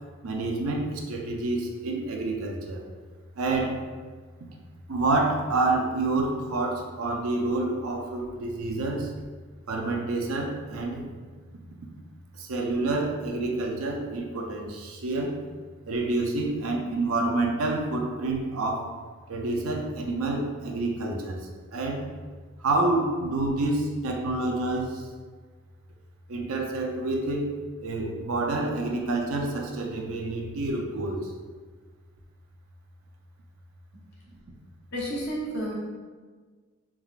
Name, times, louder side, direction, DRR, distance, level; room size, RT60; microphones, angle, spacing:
voice 1, 0.2-2.8 3.4-3.8 4.4-4.5 4.9-9.1 9.7-11.1 12.3-15.4 15.9-18.9 19.3-22.1 22.6-25.1 26.3-31.3 34.3-34.4, right 2 dB, 75° right, 1 dB, 0.6 m, -28 dB
voice 2, 34.9-35.7, equal, 50° left, -6 dB, 1.1 m, -31 dB
4.0 x 3.6 x 2.4 m, 1.5 s
head